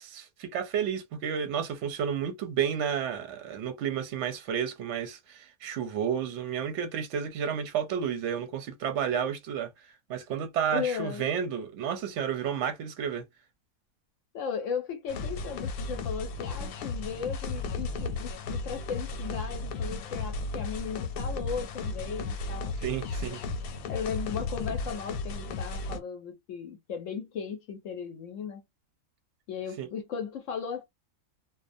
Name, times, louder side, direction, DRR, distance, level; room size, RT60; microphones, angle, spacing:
voice 1, 0.0-9.7 10.1-13.2 22.8-23.4 29.8-29.9, right 8 dB, 65° right, 0.8 m, -31 dB
voice 2, 10.7-11.3 14.3-22.8 23.9-28.6 29.5-30.8, left 7 dB, 70° left, 0.8 m, -36 dB
sound 1, 15.1-26.0, left 3 dB, 90° left, 1.1 m, -34 dB
2.5 x 2.1 x 2.5 m
omnidirectional pair, 1.5 m